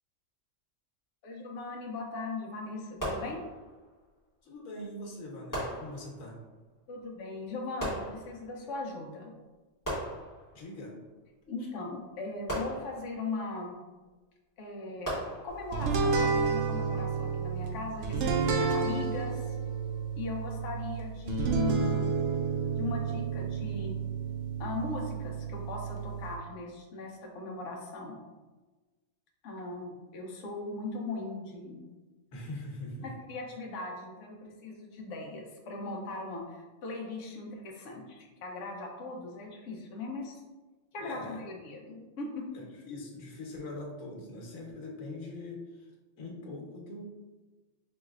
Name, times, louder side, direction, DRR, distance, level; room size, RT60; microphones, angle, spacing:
voice 1, 1.2-3.4 6.9-9.3 11.5-13.8 14.6-15.2 15.4-19.5 20.1-22.1 22.8-24.0 24.6-28.2 29.4-31.8 33.0-40.3 40.9-42.4, left 3 dB, 70° left, 0 dB, 1.0 m, -39 dB
sound 1, 3.0-3.9 5.5-6.4 7.8-8.7 9.8-10.8 12.5-13.4 15.0-15.9, equal, 15° left, 1.3 m, -38 dB
voice 2, 4.4-6.4 10.5-11.0 11.6-11.7 32.3-33.1 41.0-41.4 42.5-45.9 46.2-47.0, left 1 dB, 85° left, -1 dB, 1.3 m, -42 dB
sound 2, 15.7-26.4, right 5 dB, 75° right, 0.9 m, -31 dB
4.7 x 3.0 x 2.4 m, 1.2 s
omnidirectional pair, 1.4 m